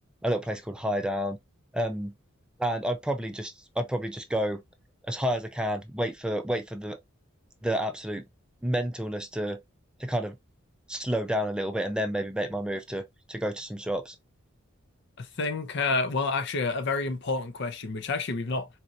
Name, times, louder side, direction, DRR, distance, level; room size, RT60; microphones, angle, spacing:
voice 1, 0.2-1.4 1.7-2.1 2.6-4.6 5.0-7.0 7.6-8.2 8.6-9.6 10.0-10.3 10.9-13.0 13.3-14.2, equal, 5° right, 0.4 m, -30 dB
voice 2, 15.2-18.7, left 3 dB, 60° left, 0.6 m, -29 dB
4.2 x 2.7 x 2.3 m
head